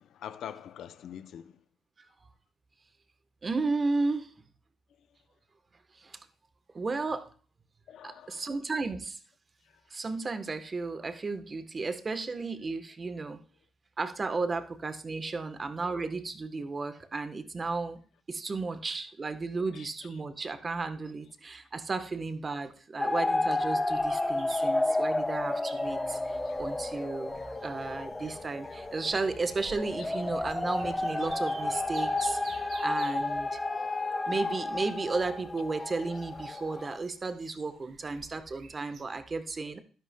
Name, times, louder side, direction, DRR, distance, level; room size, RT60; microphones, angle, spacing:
voice 1, 0.0-1.6 4.9-5.2 7.9-8.6 9.6-9.9 19.7-20.2 26.2-26.5, left 9 dB, 75° left, 0.5 m, -46 dB
voice 2, 3.4-4.3 5.9-6.2 6.7-7.3 8.0-9.2 9.9-13.4 14.0-18.0 18.3-33.6 34.3-39.8, right 3 dB, 30° right, 1.0 m, -34 dB
sound 1, 23.0-37.0, left 2 dB, 15° left, 0.6 m, -31 dB
sound 2, 23.9-39.0, right 5 dB, 65° right, 1.2 m, -53 dB
sound 3, 25.8-32.7, left 5 dB, 60° left, 1.4 m, -54 dB
12.0 x 10.5 x 2.2 m
cardioid pair, 90°, 0 cm